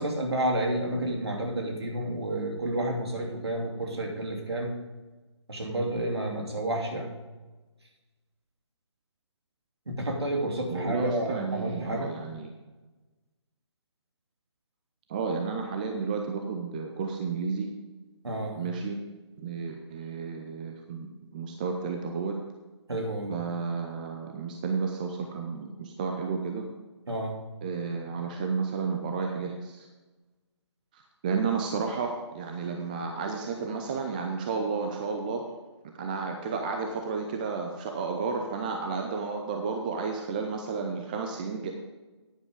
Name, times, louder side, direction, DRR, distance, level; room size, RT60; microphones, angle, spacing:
voice 1, 0.0-4.7 5.5-7.1 9.9-12.1 18.2-18.6 22.9-23.4 27.1-27.3, right 1 dB, 60° right, 1 dB, 2.7 m, -30 dB
voice 2, 10.7-12.5 15.1-17.7 18.6-19.0 19.4-22.4 23.3-26.7 27.6-29.9 30.9-35.4 35.8-41.7, right 5 dB, 15° right, 3 dB, 0.6 m, -32 dB
10.5 x 10.0 x 3.6 m, 1.2 s
figure-of-eight pair, 145°, 15 cm